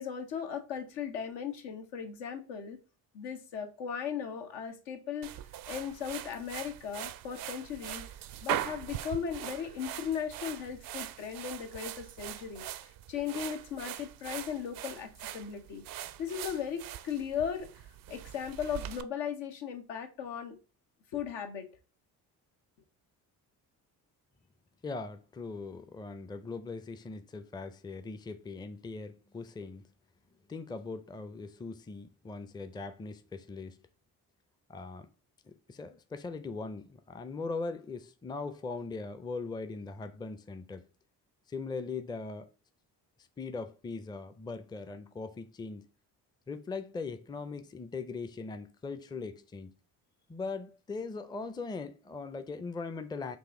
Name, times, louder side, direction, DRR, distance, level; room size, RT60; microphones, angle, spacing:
voice 1, 0.0-2.8 3.1-5.3 5.7-8.1 8.4-15.8 16.2-17.7 18.1-20.6 21.1-21.7, left 8 dB, 75° left, 1.0 m, -37 dB
sound 1, 5.2-19.0, right 12 dB, 50° right, 0.5 m, -41 dB
voice 2, 24.8-29.9 30.5-33.8 34.7-35.1 35.4-40.9 41.5-42.5 43.4-45.9 46.5-49.7 50.3-53.4, left 4 dB, 10° left, 0.4 m, -40 dB
4.1 x 2.6 x 3.6 m
hypercardioid pair, 50°, 44 cm